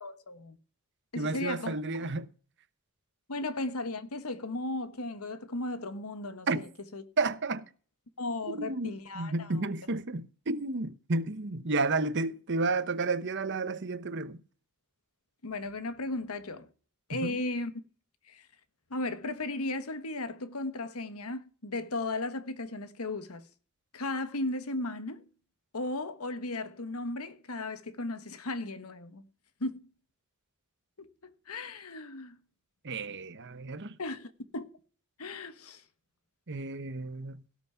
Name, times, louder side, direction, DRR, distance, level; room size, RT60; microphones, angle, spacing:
voice 1, 0.0-0.6 1.1-1.7 2.0-2.1 3.3-6.7 6.9-7.0 8.2-9.5 15.4-16.7 17.1-17.7 18.3-18.5 18.9-23.5 23.9-25.2 25.7-29.2 29.6-29.9 31.0-32.4 34.0-34.7 35.2-35.8, left 2 dB, 80° left, 1.4 m, -36 dB
voice 2, 1.2-2.3 6.5-6.6 7.2-7.7 8.5-14.4 17.1-17.4 32.8-34.0 36.5-37.4, right 3 dB, 55° right, 1.0 m, -32 dB
17.5 x 6.2 x 5.8 m
head